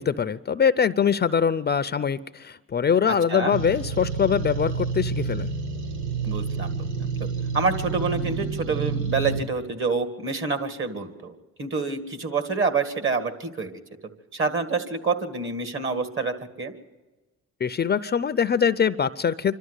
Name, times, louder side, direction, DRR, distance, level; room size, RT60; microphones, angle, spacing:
voice 1, 0.0-5.5 17.6-19.6, left 7 dB, 35° left, 13 dB, 0.6 m, -23 dB
sound 1, 3.5-9.4, right 5 dB, 85° right, 1.5 m, -29 dB
voice 2, 6.2-7.3 7.5-13.7 14.3-16.7, right 4 dB, 40° right, 9 dB, 2.2 m, -27 dB
26.5 x 12.5 x 8.2 m, 1.2 s
cardioid pair, 90°, 30 cm